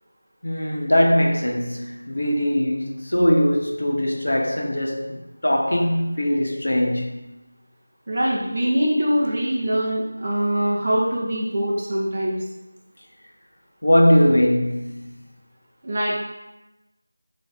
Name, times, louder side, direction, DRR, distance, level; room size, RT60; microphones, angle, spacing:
voice 1, 0.4-7.2 13.8-15.1, equal, 80° left, 0.7 m, -20 dB
voice 2, 8.1-12.4 15.8-16.2, equal, 35° right, 0.6 m, -23 dB
3.2 x 2.5 x 3.9 m
figure-of-eight pair, 175°, 0 cm